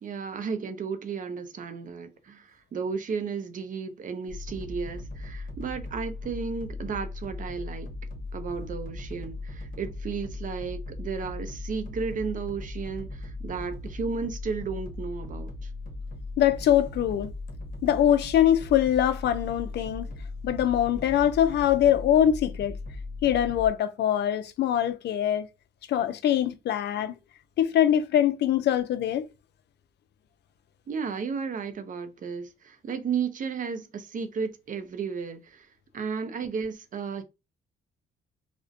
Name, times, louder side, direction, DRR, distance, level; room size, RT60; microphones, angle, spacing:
voice 1, 0.0-7.9 8.3-15.7 30.9-35.7 35.9-37.2, right 5 dB, 40° right, 0.5 m, -33 dB
sound 1, 4.3-23.7, left 2 dB, 45° left, 0.8 m, -38 dB
voice 2, 16.4-17.3 17.8-20.1 20.4-22.7 23.2-25.5 25.9-27.1 27.6-29.3, left 10 dB, 60° left, 0.4 m, -23 dB
2.4 x 2.1 x 2.4 m
cardioid pair, 90°, 20 cm